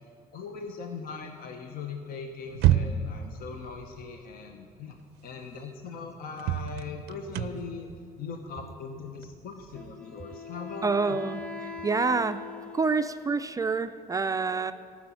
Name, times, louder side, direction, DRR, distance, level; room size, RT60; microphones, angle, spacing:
voice 1, 0.3-5.0 5.2-7.9 8.2-11.2, left 5 dB, 60° left, 4 dB, 0.9 m, -40 dB
sound 1, 2.5-3.3 5.0-5.1 5.6-5.7 6.4-10.0, right 11 dB, 90° right, 0.5 m, -28 dB
Wind instrument woodwind instrument, 9.7-13.3, left 4 dB, 5° left, 0.9 m, -41 dB
voice 2, 10.8-12.5 12.7-14.7, right 4 dB, 20° right, 9 dB, 0.3 m, -27 dB
12.0 x 6.1 x 9.0 m, 2.3 s
cardioid pair, 110°, 17 cm